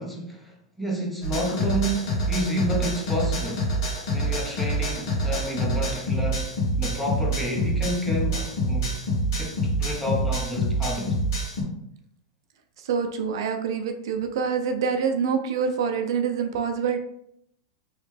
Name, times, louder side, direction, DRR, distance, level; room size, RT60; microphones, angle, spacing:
voice 1, 0.0-3.7 4.1-9.1 9.3-11.2, equal, 5° left, 0.8 m, -30 dB
sound 1, 1.2-11.6, right 1 dB, 70° left, 1.3 m, -26 dB
voice 2, 12.9-17.0, right 6 dB, 75° right, 0.5 m, -26 dB
3.1 x 2.9 x 3.3 m
hypercardioid pair, 125°, 2 cm